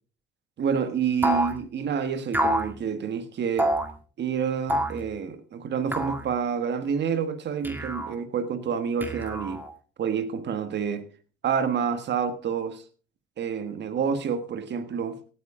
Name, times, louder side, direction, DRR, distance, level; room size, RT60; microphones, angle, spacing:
voice 1, 0.6-3.7 4.2-9.6 10.0-11.0 11.4-12.8 13.4-15.2, right 7 dB, 60° right, 1.5 m, -28 dB
sound 1, 1.2-1.6 2.3-2.7 3.6-3.9 4.7-5.0 5.9-6.2 7.6-8.2 9.0-9.7, right 1 dB, 10° right, 2.0 m, -26 dB
17.5 x 9.3 x 3.7 m
cardioid pair, 90°, 20 cm